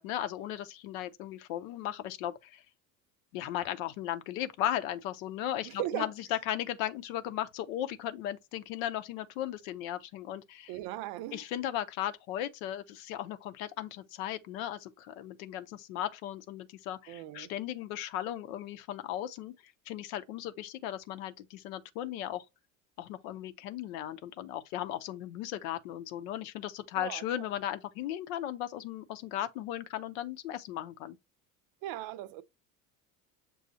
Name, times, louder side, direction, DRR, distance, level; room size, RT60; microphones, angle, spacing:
voice 1, 0.0-2.6 3.3-10.7 11.3-22.4 23.0-31.2, left 12 dB, 75° left, 0.7 m, -36 dB
voice 2, 5.6-6.1 10.7-11.4 17.1-17.5 27.0-27.2 31.8-32.4, right 14 dB, 60° right, 0.6 m, -37 dB
6.9 x 2.3 x 2.6 m
hypercardioid pair, 75°, 41 cm